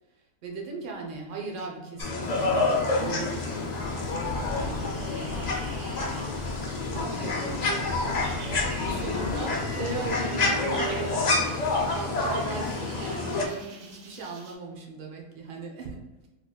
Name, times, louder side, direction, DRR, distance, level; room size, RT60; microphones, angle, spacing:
voice 1, 0.4-6.1 6.9-11.6 11.9-16.3, right 4 dB, 50° right, 0 dB, 0.6 m, -38 dB
sound 1, 2.0-13.4, left 3 dB, 80° left, 0.3 m, -28 dB
sound 2, 2.2-14.5, right 4 dB, 70° right, 1.0 m, -47 dB
4.1 x 3.0 x 2.2 m, 1.1 s
omnidirectional pair, 1.5 m